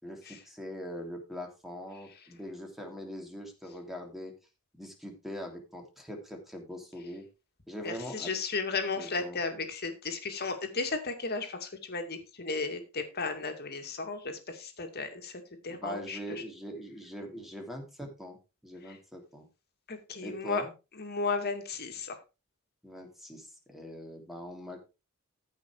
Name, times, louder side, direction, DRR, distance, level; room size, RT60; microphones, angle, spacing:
voice 1, 0.0-4.3 4.7-7.3 7.7-8.3 8.9-9.4 15.7-18.4 18.6-19.5 20.2-20.7 22.8-24.8, equal, ahead, 2 dB, 3.0 m, -42 dB
voice 2, 7.8-16.4 18.9-19.0 19.9-20.6 21.0-22.2, left 4 dB, 45° left, 6 dB, 2.4 m, -34 dB
14.0 x 5.8 x 4.7 m, 0.29 s
head